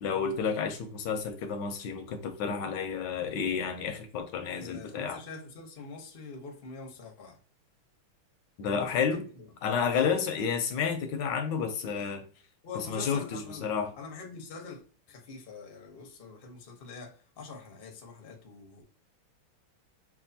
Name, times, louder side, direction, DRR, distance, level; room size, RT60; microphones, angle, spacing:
voice 1, 0.0-5.2 8.6-9.2 9.6-12.2 12.7-13.9, left 6 dB, 70° left, 1.1 m, -31 dB
voice 2, 4.5-7.4 8.8-9.5 9.9-10.2 12.6-14.8 15.1-18.8, left 4 dB, 55° left, 0.6 m, -44 dB
6.0 x 2.5 x 2.7 m
omnidirectional pair, 2.4 m